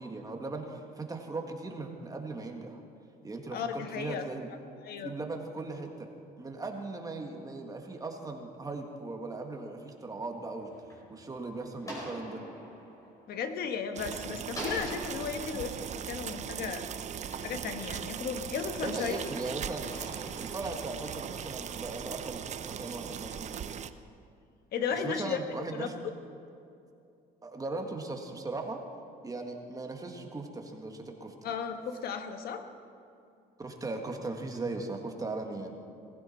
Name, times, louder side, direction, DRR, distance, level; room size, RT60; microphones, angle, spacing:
voice 1, 0.0-2.8 3.2-4.5 5.0-6.1 6.4-10.7 11.1-12.4 18.8-19.9 20.4-23.5 24.9-25.9 27.4-28.8 29.2-31.3 33.6-35.8, right 3 dB, 20° right, 3 dB, 1.8 m, -38 dB
voice 2, 3.5-4.6 4.8-5.1 13.3-16.9 17.4-19.2 24.7-25.4 25.7-25.9 31.4-32.6, left 6 dB, 65° left, 7 dB, 1.3 m, -35 dB
sound 1, 10.3-14.0 14.5-18.3 18.9-21.5, equal, 20° left, 4.8 m, -46 dB
sound 2, 14.0-23.9, right 8 dB, 45° right, 0.7 m, -39 dB
19.0 x 15.5 x 4.4 m, 2.5 s
cardioid pair, 110°, 17 cm